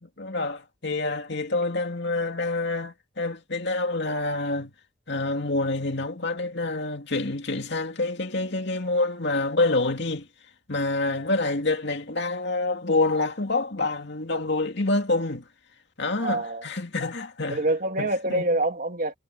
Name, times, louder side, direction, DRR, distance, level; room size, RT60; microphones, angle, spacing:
voice 1, 0.0-4.7 5.1-10.3 10.7-15.5 16.0-17.6 18.0-18.4, left 2 dB, 55° left, 2.6 m, -27 dB
voice 2, 16.2-16.6 17.5-19.1, right 2 dB, 45° right, 2.5 m, -26 dB
head